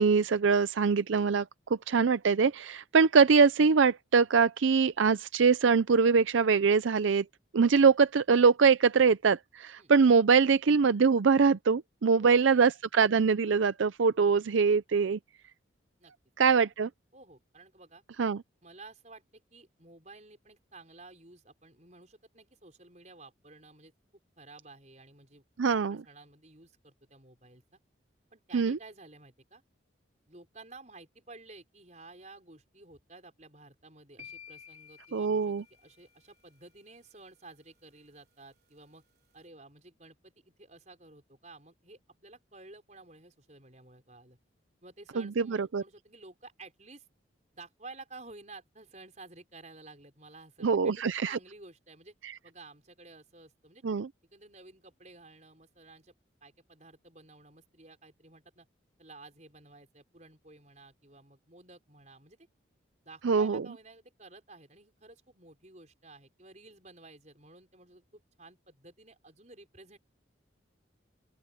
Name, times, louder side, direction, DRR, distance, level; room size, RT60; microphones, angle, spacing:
voice 1, 0.0-1.5 1.9-7.2 7.5-15.2 16.4-16.9 18.2-18.4 25.6-26.0 28.5-28.8 35.1-35.6 45.2-45.8 50.6-51.4 53.8-54.1 63.2-63.6, right 5 dB, 80° right, 0.5 m, -23 dB
voice 2, 12.1-12.6 16.0-16.1 17.1-18.0 18.6-25.4 25.9-27.8 28.3-29.6 30.3-39.0 39.3-44.4 44.8-47.1 47.5-52.1 52.4-53.8 54.3-56.1 56.4-58.7 59.0-62.5 63.0-70.0, right 3 dB, 35° right, 5.7 m, -53 dB
sound 1, 34.2-36.3, left 7 dB, 55° right, 4.2 m, -52 dB
open air
head